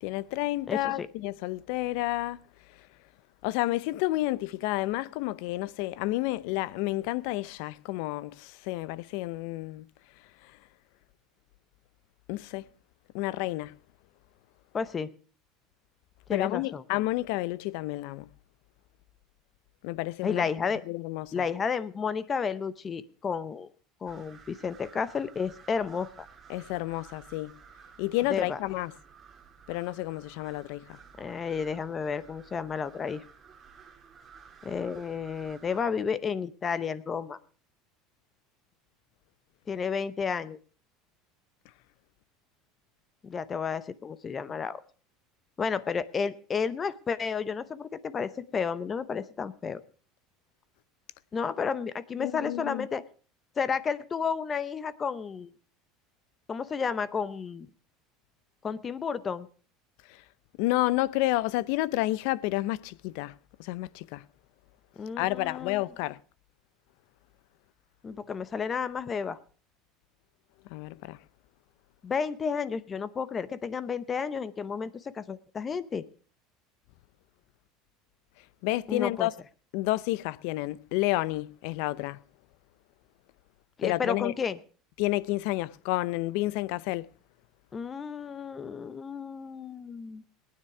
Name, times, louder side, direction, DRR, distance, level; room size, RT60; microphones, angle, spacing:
voice 1, 0.0-2.4 3.4-9.8 12.3-12.7 13.1-13.7 16.3-18.3 19.8-20.5 20.9-21.3 26.5-27.6 28.0-28.9 29.7-31.0 52.2-52.9 60.6-63.3 63.6-64.2 65.2-66.2 70.7-71.2 78.6-79.3 79.7-82.2 83.8-84.3 85.0-87.1, left 18 dB, 70° left, 0.5 m, -30 dB
voice 2, 0.7-1.1 14.7-15.1 16.3-16.8 20.2-20.8 21.3-23.7 24.0-26.3 28.3-28.6 31.2-33.2 34.6-37.4 39.7-40.6 43.2-44.8 45.6-49.8 51.3-53.0 53.6-55.5 56.5-57.7 58.6-59.5 65.0-65.8 68.0-69.4 72.0-76.1 78.9-79.3 83.8-84.6 87.7-90.2, left 6 dB, 25° left, 0.7 m, -32 dB
sound 1, 24.1-35.8, right 6 dB, 25° right, 2.5 m, -54 dB
18.5 x 9.6 x 4.8 m
supercardioid pair, 135°, 0 cm